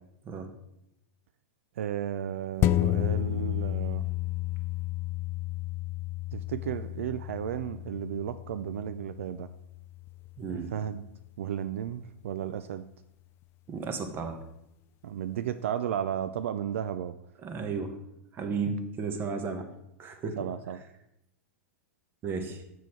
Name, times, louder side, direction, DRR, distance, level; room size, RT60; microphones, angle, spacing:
voice 1, 1.8-4.0 6.3-9.5 10.5-11.0 11.4-12.9 15.0-17.1 20.4-20.8, right 9 dB, 75° right, 11 dB, 0.4 m, -34 dB
sound 1, 2.6-11.4 11.9-12.0, left 15 dB, 35° left, 0.3 m, -32 dB
voice 2, 10.4-10.7 13.7-14.4 17.4-18.0 18.3-19.7 20.0-20.4 22.2-22.6, right 4 dB, 30° right, 7 dB, 1.2 m, -33 dB
6.8 x 6.4 x 4.5 m, 0.86 s
hypercardioid pair, 115°, 7 cm